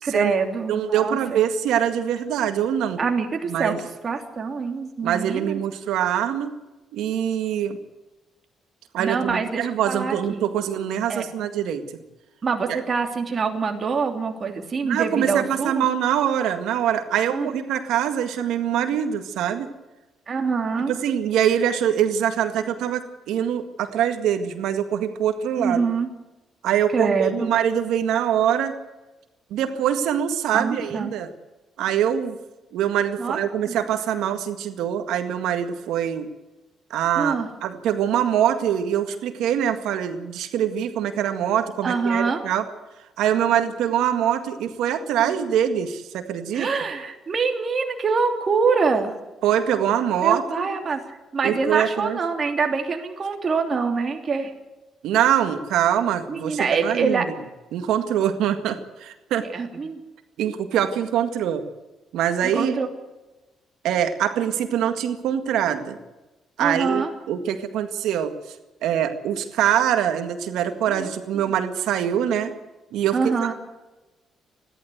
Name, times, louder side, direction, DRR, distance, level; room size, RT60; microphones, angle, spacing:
voice 1, 0.0-1.4 3.0-3.7 4.0-5.6 9.0-10.5 11.1-11.3 12.4-15.8 17.3-17.5 20.3-20.9 25.6-26.1 26.9-27.5 30.5-31.1 33.2-33.4 33.7-33.8 37.2-37.5 41.8-42.4 45.2-45.4 46.5-49.2 50.2-54.5 56.3-57.3 59.5-60.0 62.4-62.9 66.6-67.1 70.9-71.1 73.1-73.5, right 5 dB, 40° right, 4 dB, 3.2 m, -25 dB
voice 2, 0.7-3.0 3.5-3.8 5.0-6.5 6.9-7.8 8.9-11.8 12.7-12.8 14.8-19.7 20.8-25.8 26.6-28.7 29.5-31.3 31.8-32.4 32.7-36.3 36.9-42.6 43.2-46.7 49.4-50.6 51.4-52.2 55.0-57.2 57.7-59.4 60.4-61.6 62.1-62.7 63.8-66.0 66.6-68.3 68.8-72.5 72.9-73.2, right 9 dB, 85° right, 7 dB, 1.9 m, -23 dB
29.5 x 12.0 x 8.1 m, 1.1 s
cardioid pair, 90°, 0 cm